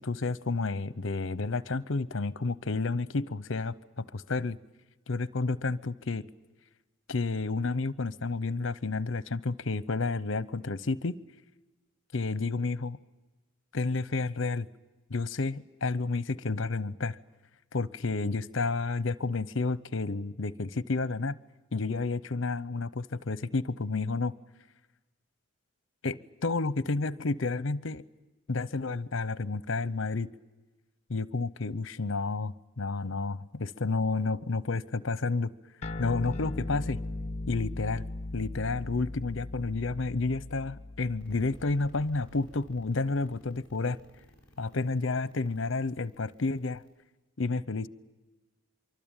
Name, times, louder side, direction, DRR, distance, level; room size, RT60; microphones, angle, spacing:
voice 1, 0.0-4.6 5.1-6.3 7.1-11.2 12.1-13.0 13.7-14.7 15.1-17.2 17.7-21.4 21.7-24.3 26.0-28.0 28.5-30.3 31.1-35.5 36.0-37.0 37.5-38.1 38.3-44.0 44.6-46.8 47.4-47.9, left 3 dB, 60° left, 18 dB, 0.8 m, -30 dB
sound 1, 35.8-42.6, left 2 dB, 30° left, 0.8 m, -38 dB
sound 2, 41.2-46.9, equal, 5° left, 7.0 m, -56 dB
25.0 x 24.0 x 8.9 m, 1.2 s
head